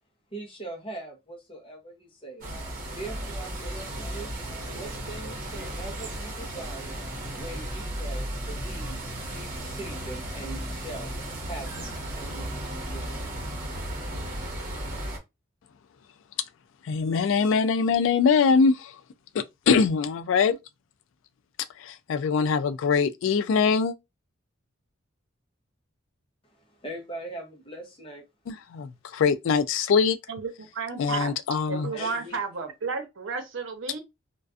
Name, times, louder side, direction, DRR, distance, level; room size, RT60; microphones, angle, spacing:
voice 1, 0.3-2.5 2.9-4.3 4.7-7.0 7.4-11.1 11.5-13.2 14.1-14.8 26.4-28.2 31.9-32.4, right 2 dB, 25° left, 0.7 m, -41 dB
sound 1, 2.4-15.2, right 1 dB, 45° right, 0.9 m, -35 dB
voice 2, 16.8-18.9 19.3-20.6 21.8-24.0 28.5-30.2 31.0-31.9, left 5 dB, 70° left, 0.3 m, -23 dB
voice 3, 30.3-31.3 31.7-34.0, right 4 dB, 75° right, 0.8 m, -32 dB
2.4 x 2.2 x 2.4 m
head